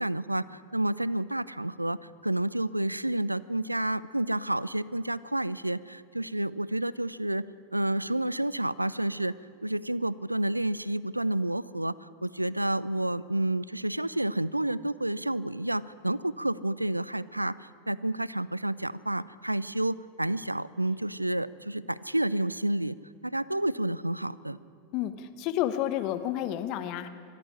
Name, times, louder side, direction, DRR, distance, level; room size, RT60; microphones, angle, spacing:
voice 1, 0.0-7.4 7.7-9.3 9.6-23.0 23.2-24.6, right 1 dB, 85° right, 20 dB, 0.4 m, -30 dB
voice 2, 24.9-27.1, left 12 dB, 40° left, 11 dB, 1.2 m, -30 dB
22.5 x 13.5 x 10.0 m, 2.4 s
figure-of-eight pair, 90°, 0 cm